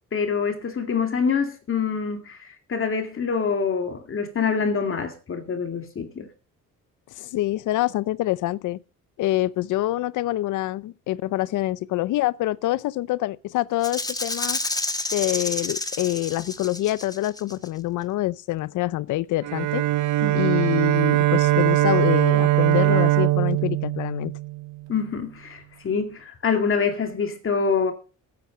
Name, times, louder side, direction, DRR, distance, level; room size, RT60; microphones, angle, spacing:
voice 1, 0.1-6.3 20.2-20.4 24.9-27.9, left 5 dB, 45° left, 2.2 m, -25 dB
voice 2, 7.1-8.8 9.2-14.6 15.1-19.8 20.3-24.4, left 16 dB, 80° left, 0.6 m, -26 dB
Rattle (instrument), 13.8-17.7, left 2 dB, 10° left, 1.3 m, -30 dB
Bowed string instrument, 19.4-24.9, right 16 dB, 75° right, 0.6 m, -21 dB
13.0 x 9.7 x 5.0 m
cardioid pair, 90°, 30 cm